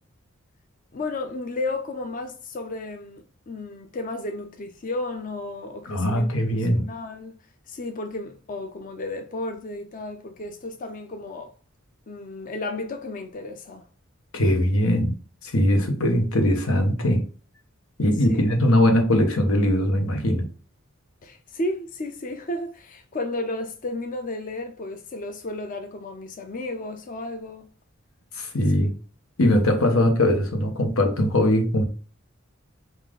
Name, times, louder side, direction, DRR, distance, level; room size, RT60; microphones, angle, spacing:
voice 1, 0.9-7.4 7.7-11.5 12.1-13.8 18.3-18.5 21.2-27.7 28.8-28.9, left 2 dB, 40° left, 0.5 m, -33 dB
voice 2, 5.8-6.9 14.3-15.1 15.4-17.2 18.0-20.5 28.3-28.9 29.4-31.9, left 1 dB, 90° left, 1.1 m, -21 dB
5.4 x 2.4 x 3.7 m
head